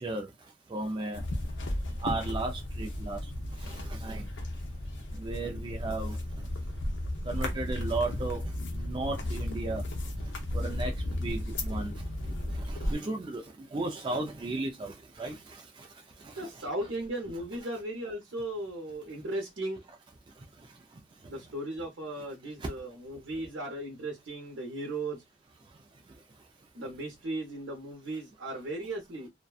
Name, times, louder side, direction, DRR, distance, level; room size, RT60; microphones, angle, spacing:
voice 1, 0.7-1.2 2.0-3.2 3.9-4.2 5.2-6.2 7.3-8.4 8.8-9.8 10.5-10.9 11.2-11.9 12.7-13.4 13.7-15.3 16.4-16.5, right 2 dB, 25° right, 0.3 m, -34 dB
sound 1, 1.1-12.9, left 1 dB, 75° left, 0.7 m, -34 dB
voice 2, 16.3-19.8 21.3-25.2 26.7-29.3, right 1 dB, 80° right, 0.8 m, -36 dB
2.6 x 2.2 x 2.3 m
head